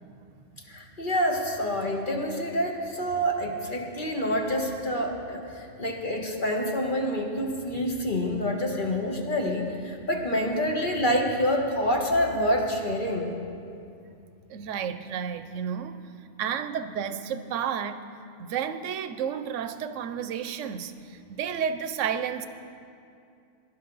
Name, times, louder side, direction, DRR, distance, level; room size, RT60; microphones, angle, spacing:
voice 1, 0.7-13.3, equal, 45° left, 0 dB, 1.5 m, -27 dB
voice 2, 14.5-16.0 16.4-18.0 18.4-22.5, right 8 dB, 85° right, 11 dB, 1.0 m, -31 dB
18.0 x 11.5 x 3.9 m, 2.5 s
omnidirectional pair, 1.2 m